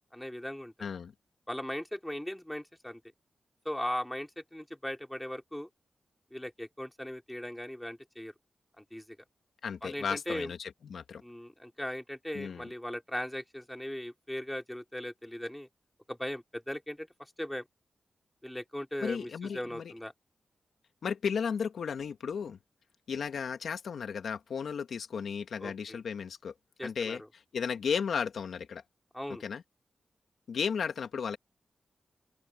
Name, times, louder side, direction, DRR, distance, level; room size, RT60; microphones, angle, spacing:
voice 1, 0.1-0.7 1.5-3.0 3.6-5.7 6.3-8.3 8.8-9.0 9.8-10.5 11.2-15.7 16.1-17.6 18.4-20.1 25.6-26.0 26.8-27.2 29.1-29.4, equal, 5° left, 4.7 m, -38 dB
voice 2, 0.8-1.1 9.6-11.2 12.3-12.7 19.0-19.9 21.0-22.6 23.1-26.5 26.8-27.2 27.5-28.8 29.4-29.6 30.5-31.4, left 6 dB, 80° left, 1.7 m, -34 dB
open air
cardioid pair, 65°, 0 cm